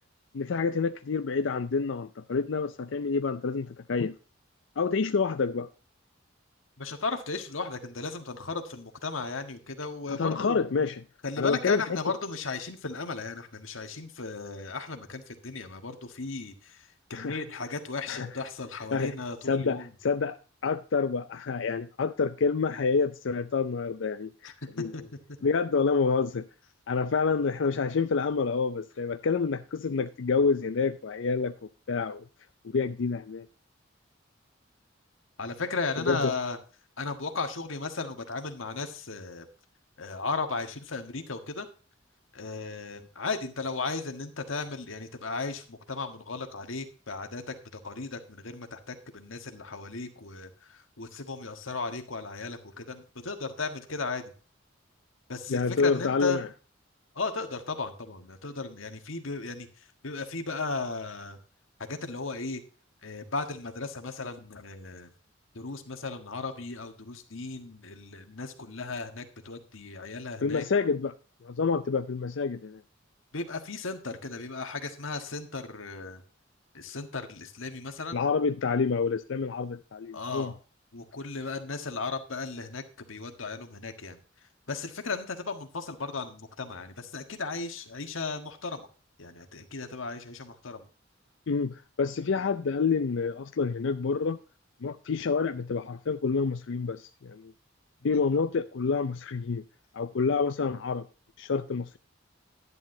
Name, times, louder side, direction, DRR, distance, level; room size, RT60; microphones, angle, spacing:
voice 1, 0.3-4.1 4.8-5.7 10.1-11.0 11.4-11.8 17.1-17.4 18.1-18.3 18.9-19.1 19.5-24.5 24.8-24.9 25.4-26.4 26.9-31.5 31.9-32.2 32.7-33.5 36.1-36.3 55.5-56.5 70.4-71.1 71.4-72.8 78.1-80.5 91.5-94.4 94.8-97.5 98.0-99.6 99.9-101.1 101.4-102.0, left 5 dB, 65° left, 0.5 m, -28 dB
voice 2, 6.8-10.6 11.2-19.9 24.4-25.0 35.4-36.6 37.0-39.5 40.0-41.7 42.3-54.3 55.3-56.4 57.1-61.4 61.8-62.6 63.0-65.1 65.5-70.6 73.3-76.2 76.7-78.2 80.1-80.6 80.9-84.2 84.7-88.9 89.2-90.9 98.0-98.2, left 4 dB, 90° left, 1.6 m, -35 dB
11.0 x 10.5 x 2.7 m
head